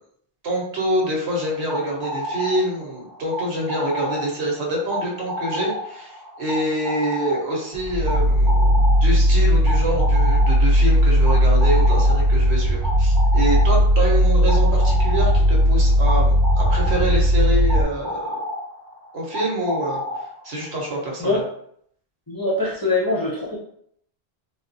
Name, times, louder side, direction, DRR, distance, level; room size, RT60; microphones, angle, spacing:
voice 1, 0.4-18.3 19.1-20.0 20.4-21.4, right 1 dB, 90° right, -1 dB, 1.1 m, -26 dB
sound 1, 1.3-20.7, left 1 dB, 30° right, 0.5 m, -32 dB
sound 2, 7.7-17.8, equal, 60° right, 0.9 m, -17 dB
voice 2, 22.3-23.6, left 2 dB, 30° left, -5 dB, 0.5 m, -23 dB
3.4 x 2.3 x 2.6 m, 0.67 s
omnidirectional pair, 1.1 m